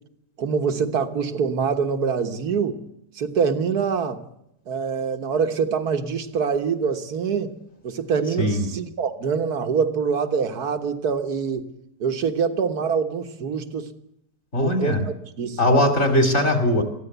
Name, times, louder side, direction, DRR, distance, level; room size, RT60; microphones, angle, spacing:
voice 1, 0.4-2.8 3.2-4.2 4.7-7.5 7.8-11.7 12.0-13.9 14.6-15.9, right 6 dB, 65° right, 8 dB, 1.9 m, -25 dB
voice 2, 14.5-15.1 15.6-16.8, left 1 dB, 40° left, 5 dB, 3.5 m, -20 dB
22.0 x 15.5 x 8.1 m, 0.80 s
omnidirectional pair, 1.8 m